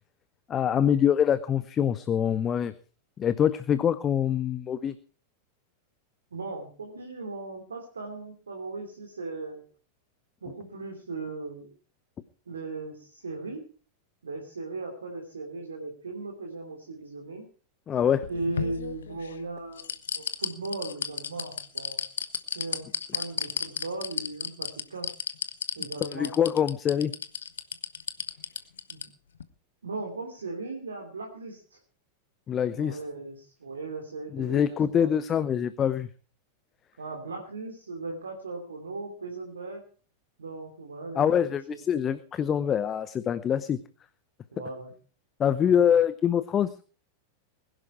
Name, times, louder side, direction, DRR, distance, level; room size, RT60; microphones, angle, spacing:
voice 1, 0.5-2.7 3.2-4.9 17.9-18.2 26.0-27.1 32.5-33.0 34.3-36.1 41.2-43.8 45.4-46.7, left 9 dB, 25° left, 15 dB, 0.8 m, -24 dB
voice 2, 6.3-9.6 10.4-11.7 12.5-13.6 14.2-17.5 18.3-22.0 22.5-25.1 25.8-26.3 28.9-29.1 29.8-31.8 32.7-35.1 37.0-39.8 40.4-41.8 44.5-44.9 45.6-46.0, right 3 dB, 70° right, 2 dB, 3.0 m, -38 dB
sound 1, 18.0-19.3 19.8-29.0 29.4-29.5, left 7 dB, 65° left, 1.1 m, -32 dB
20.5 x 11.5 x 4.7 m, 0.40 s
figure-of-eight pair, 90°, 0 cm